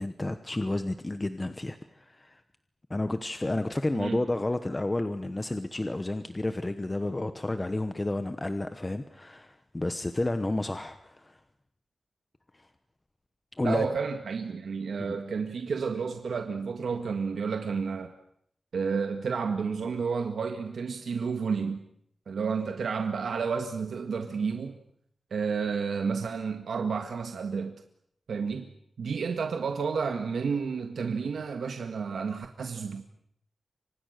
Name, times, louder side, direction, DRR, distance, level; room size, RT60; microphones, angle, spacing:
voice 1, 0.0-2.4 2.9-11.4 13.6-13.9 15.0-15.2, left 2 dB, 15° left, 9 dB, 1.0 m, -31 dB
voice 2, 13.6-18.1 18.7-21.8 22.3-24.8 25.3-27.7 28.3-28.7 29.0-33.0, right 5 dB, 85° right, 5 dB, 1.8 m, -31 dB
30.0 x 25.5 x 6.6 m, 0.69 s
wide cardioid pair, 180°, 0 cm